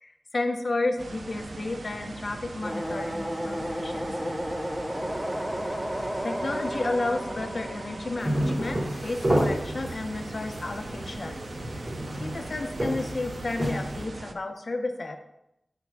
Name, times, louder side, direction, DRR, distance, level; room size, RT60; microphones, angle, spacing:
voice 1, 0.0-4.4 6.2-11.4 11.8-11.9 12.2-15.2, left 2 dB, 65° left, 4 dB, 0.8 m, -32 dB
sound 1, 1.0-14.3, right 3 dB, 75° right, 0.6 m, -41 dB
sound 2, 2.6-9.6, equal, 15° right, 1.1 m, -33 dB
sound 3, 8.2-14.0, right 1 dB, 55° right, 3.2 m, -30 dB
8.9 x 8.5 x 2.3 m, 0.83 s
wide cardioid pair, 65°, 0 cm